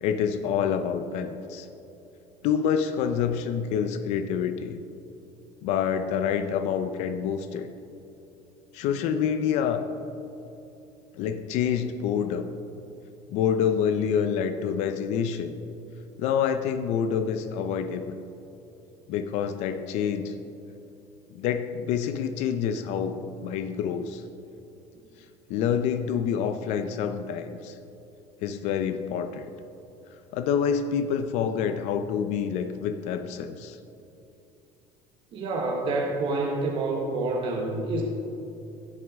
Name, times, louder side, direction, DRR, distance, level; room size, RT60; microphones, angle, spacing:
voice 1, 0.0-1.7 2.4-4.8 5.6-7.7 8.7-9.8 11.1-12.5 13.3-15.5 16.2-18.2 19.1-20.3 21.3-24.2 25.5-27.8 28.4-29.5 30.3-33.8, left 7 dB, 70° left, 8 dB, 0.6 m, -27 dB
voice 2, 35.3-38.0, right 2 dB, 45° right, 0 dB, 1.1 m, -28 dB
16.0 x 6.3 x 3.5 m, 2.9 s
cardioid pair, 140°, 12 cm